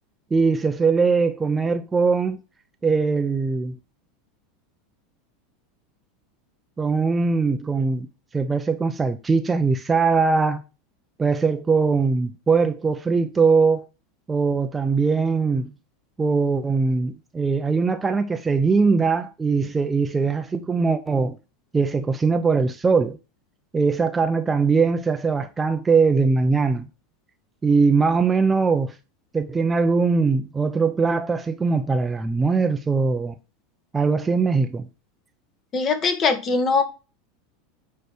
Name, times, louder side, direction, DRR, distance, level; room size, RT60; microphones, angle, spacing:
voice 1, 0.3-2.4 2.8-3.7 6.8-8.1 8.3-10.6 11.2-13.9 14.3-15.7 16.2-21.4 21.7-23.2 23.7-26.9 27.6-28.9 29.3-33.3 33.9-34.9, right 4 dB, 15° right, 0.7 m, -21 dB
voice 2, 35.7-36.8, left 4 dB, 35° left, 1.4 m, -21 dB
9.1 x 3.2 x 5.9 m
figure-of-eight pair, 80°, 0 cm